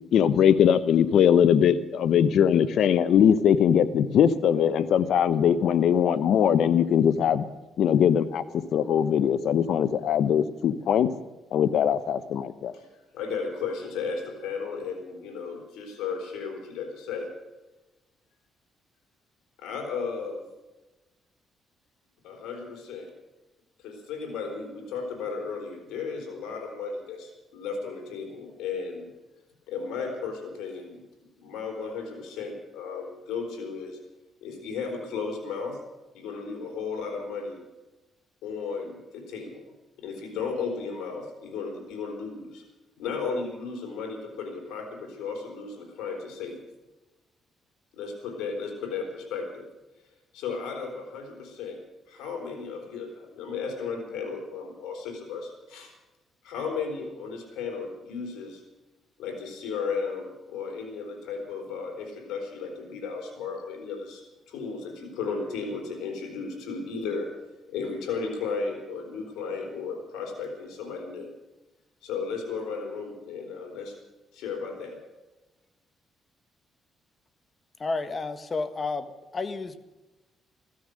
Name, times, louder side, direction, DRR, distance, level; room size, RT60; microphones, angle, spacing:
voice 1, 0.1-7.4 7.8-11.1 11.5-12.7, left 8 dB, 70° left, 14 dB, 0.9 m, -21 dB
voice 2, 13.1-17.3 19.6-20.4 22.2-23.1 23.8-29.1 29.7-31.0 31.4-34.0 34.4-35.8 36.1-37.6 38.4-39.7 40.0-42.6 43.0-46.6 47.9-49.7 50.3-51.8 52.1-55.9 56.4-58.6 59.2-64.2 64.5-67.3 67.7-71.3 72.0-73.9 74.3-75.0, left 5 dB, 90° left, 3 dB, 4.1 m, -34 dB
voice 3, 77.8-79.8, left 3 dB, 35° left, 11 dB, 1.5 m, -31 dB
15.5 x 13.5 x 6.5 m, 1.1 s
cardioid pair, 90°, 0 cm